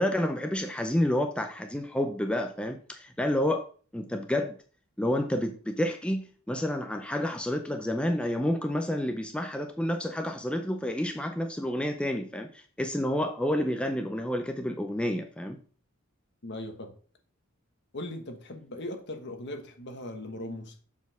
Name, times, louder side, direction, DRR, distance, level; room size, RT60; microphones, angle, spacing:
voice 1, 0.0-3.7 3.9-4.5 5.0-15.6, left 1 dB, 5° left, 0.4 m, -29 dB
voice 2, 16.4-16.9 17.9-20.7, left 1 dB, 55° left, 1.2 m, -39 dB
7.2 x 4.1 x 5.2 m
head